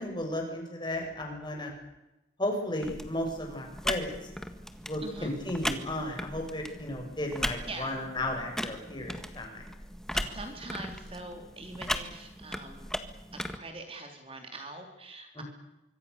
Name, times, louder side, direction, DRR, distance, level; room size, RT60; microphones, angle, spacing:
voice 1, 0.0-1.7 2.4-4.1 4.8-9.7 10.1-10.4 15.3-15.4, left 1 dB, 25° left, 2 dB, 6.7 m, -34 dB
sound 1, 2.8-13.6, equal, 5° left, 1.6 m, -38 dB
voice 2, 7.7-8.0 10.1-12.9 13.4-15.4, right 2 dB, 30° right, 4 dB, 3.6 m, -43 dB
25.5 x 24.5 x 6.9 m, 0.95 s
head